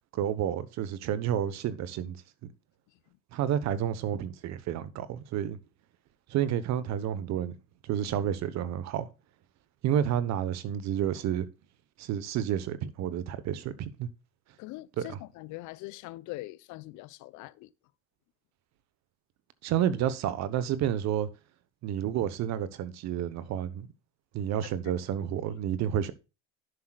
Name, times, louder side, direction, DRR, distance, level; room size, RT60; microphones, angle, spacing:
voice 1, 0.1-2.2 2.4-2.5 3.3-5.6 6.3-7.5 7.8-9.1 9.8-11.5 12.0-14.1 15.0-15.2 19.6-21.3 21.8-23.9 24.3-26.1, right 10 dB, 50° right, 1.1 m, -30 dB
voice 2, 14.6-17.7 24.6-25.0 25.5-25.6, left 19 dB, 60° left, 0.8 m, -43 dB
10.5 x 7.7 x 2.4 m
supercardioid pair, 100°, 34 cm